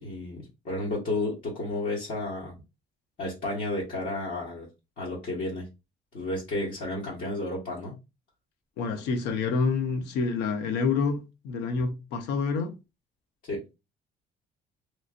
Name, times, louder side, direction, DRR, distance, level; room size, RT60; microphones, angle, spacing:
voice 1, 0.0-2.5 3.2-4.7 5.0-5.6 6.1-8.0 13.5-13.6, left 2 dB, 55° left, 1.4 m, -32 dB
voice 2, 8.8-12.7, left 4 dB, 90° left, 0.7 m, -28 dB
3.1 x 2.6 x 2.5 m
cardioid pair, 110°, 17 cm